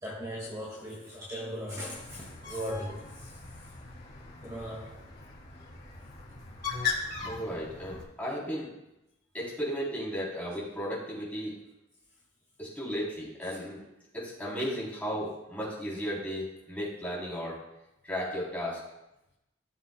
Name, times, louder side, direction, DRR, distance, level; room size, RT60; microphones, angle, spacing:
voice 1, 0.0-3.7 4.4-5.0 14.6-14.8, equal, 20° right, -5 dB, 1.8 m, -39 dB
Bird, 1.9-8.0, left 5 dB, 55° left, 2.5 m, -39 dB
voice 2, 7.2-8.7 9.3-11.5 12.6-13.8 14.1-17.6 18.0-18.8, equal, 10° left, -6 dB, 3.2 m, -35 dB
16.0 x 7.1 x 2.2 m, 0.91 s
head